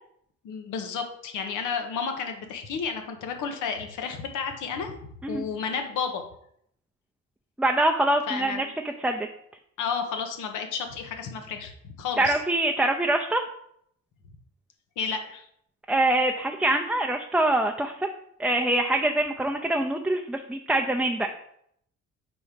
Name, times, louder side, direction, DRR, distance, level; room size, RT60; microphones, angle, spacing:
voice 1, 0.4-5.0 5.3-6.2 8.3-8.7 9.8-12.4 15.0-15.5, left 6 dB, 85° left, 6 dB, 0.9 m, -32 dB
voice 2, 7.6-8.7 9.0-9.3 12.2-13.4 15.9-18.1 18.4-21.3, right 1 dB, 5° right, 3 dB, 0.4 m, -24 dB
4.7 x 4.1 x 5.1 m, 0.69 s
cardioid pair, 90°, 30 cm